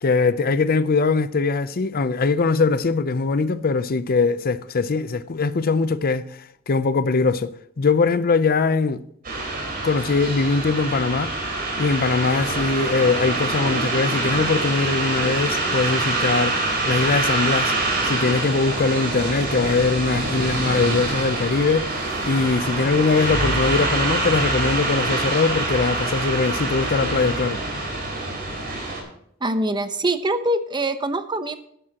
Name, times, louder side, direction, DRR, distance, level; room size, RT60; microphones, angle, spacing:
voice 1, 0.0-9.0 9.8-11.3 11.8-17.7 18.0-21.9 22.2-27.6, left 4 dB, 45° left, 0.5 m, -21 dB
sound 1, 9.2-29.0, right 2 dB, 45° right, 3.9 m, -25 dB
voice 2, 29.4-31.6, right 1 dB, 20° right, 0.8 m, -24 dB
12.5 x 11.0 x 2.9 m
head